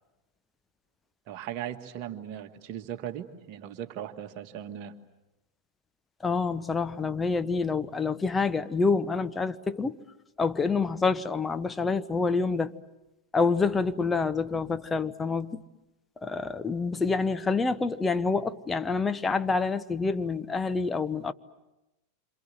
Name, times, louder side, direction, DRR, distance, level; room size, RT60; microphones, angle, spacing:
voice 1, 1.3-4.9, right 10 dB, 40° right, 1.8 m, -38 dB
voice 2, 6.2-10.0 10.4-12.7 13.3-15.6 16.2-21.3, left 4 dB, 15° left, 0.9 m, -27 dB
28.0 x 27.0 x 7.9 m
figure-of-eight pair, 90°, 0 cm